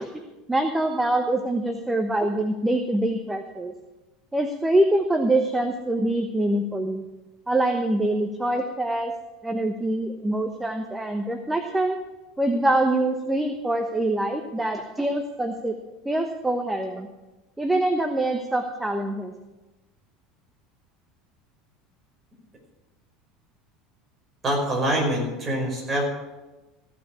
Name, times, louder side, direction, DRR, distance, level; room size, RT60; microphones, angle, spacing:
voice 1, 0.0-3.7 4.3-7.0 7.5-9.1 9.4-12.0 12.4-15.8 16.0-17.1 17.6-19.3, right 1 dB, 10° right, 6 dB, 1.0 m, -24 dB
voice 2, 24.4-26.0, right 1 dB, 25° right, -2 dB, 5.2 m, -25 dB
15.0 x 6.0 x 8.3 m, 1.1 s
figure-of-eight pair, 70°, 0 cm